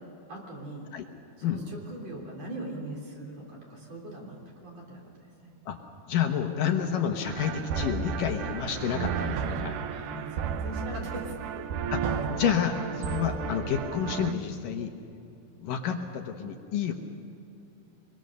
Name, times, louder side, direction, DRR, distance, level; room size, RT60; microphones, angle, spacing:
voice 1, 0.3-0.8 1.4-5.0 5.4-5.5 9.9-11.6, right 1 dB, 45° right, -2 dB, 4.5 m, -40 dB
voice 2, 6.1-9.8 11.9-14.9 15.6-16.9, left 8 dB, 70° left, 4 dB, 2.6 m, -29 dB
sound 1, 7.3-14.3, right 7 dB, 70° right, 2.1 m, -33 dB
24.5 x 22.0 x 6.7 m, 2.7 s
omnidirectional pair, 4.3 m